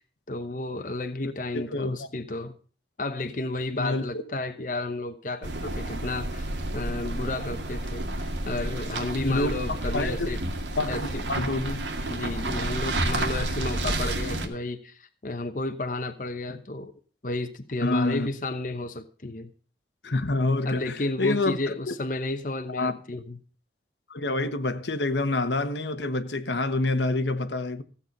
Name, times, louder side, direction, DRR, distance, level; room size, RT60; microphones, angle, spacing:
voice 1, 0.3-2.5 3.0-8.1 8.5-10.4 10.9-11.2 12.1-16.9 17.2-19.5 20.6-23.4, left 2 dB, 45° left, 0.9 m, -32 dB
voice 2, 1.5-2.1 3.7-4.0 9.2-10.3 10.8-11.9 17.8-18.3 20.0-21.6 21.9-22.0 22.7-22.9 24.1-27.8, left 2 dB, 80° left, 1.2 m, -27 dB
sound 1, 5.4-14.5, right 1 dB, 90° right, 2.2 m, -30 dB
15.5 x 8.3 x 5.3 m
head